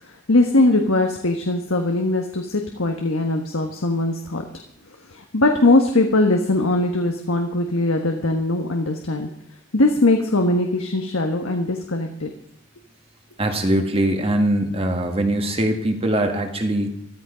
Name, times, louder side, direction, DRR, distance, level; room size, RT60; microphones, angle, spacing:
voice 1, 0.3-4.4 5.1-9.3 9.7-12.3, left 2 dB, 85° left, 3 dB, 1.5 m, -20 dB
voice 2, 13.4-16.9, right 1 dB, 30° right, 5 dB, 1.7 m, -21 dB
14.5 x 13.5 x 5.2 m, 0.72 s
head